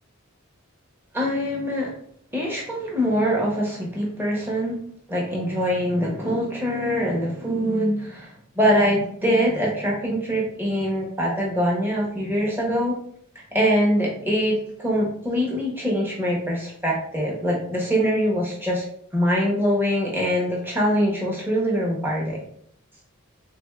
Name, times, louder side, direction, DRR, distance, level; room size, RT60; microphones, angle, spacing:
voice 1, 1.1-1.9 2.3-4.8 5.1-8.3 8.6-13.0 13.5-18.9 19.1-22.4, equal, 10° right, -3 dB, 0.6 m, -23 dB
3.5 x 3.3 x 2.2 m, 0.65 s
head